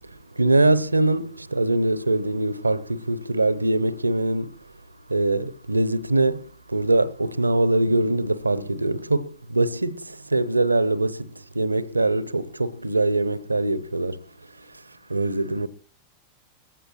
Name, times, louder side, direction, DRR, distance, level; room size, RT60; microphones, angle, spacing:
voice 1, 0.4-4.5 5.1-14.2 15.1-15.7, right 2 dB, 80° right, 0.7 m, -23 dB
20.5 x 15.0 x 3.0 m
figure-of-eight pair, 90°, 0 cm